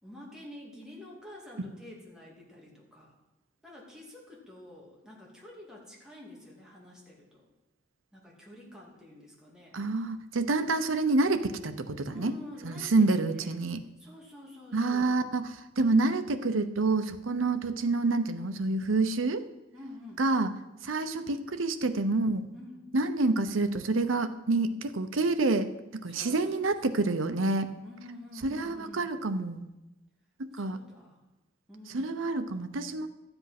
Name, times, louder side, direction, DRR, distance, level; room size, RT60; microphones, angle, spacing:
voice 1, 0.0-3.2 3.6-7.5 8.1-9.8 12.1-13.6 14.0-15.2 19.7-20.2 22.5-22.9 26.1-27.1 27.8-29.1 30.5-31.2 31.7-32.2, left 1 dB, 5° right, -4 dB, 2.6 m, -48 dB
voice 2, 9.7-12.3 12.6-13.8 14.7-15.5 15.8-19.5 20.2-20.5 20.8-22.5 22.9-27.7 28.4-29.6 30.6-30.8 31.9-33.1, right 3 dB, 90° right, 10 dB, 0.8 m, -28 dB
13.0 x 8.0 x 5.9 m, 1.0 s
head